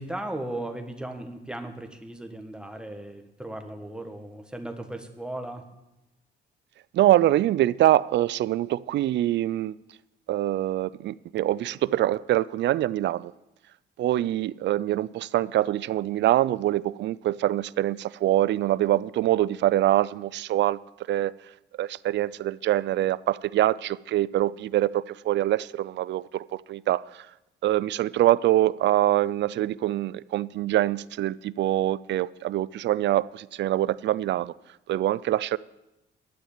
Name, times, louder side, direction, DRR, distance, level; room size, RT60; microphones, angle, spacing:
voice 1, 0.0-5.6, right 1 dB, 5° right, 1.5 m, -36 dB
voice 2, 6.9-9.7 10.3-13.3 14.0-20.8 21.1-21.3 21.8-27.3 27.6-34.5 34.9-35.6, right 14 dB, 65° right, 0.4 m, -24 dB
11.5 x 6.4 x 8.3 m
cardioid pair, 90°, 20 cm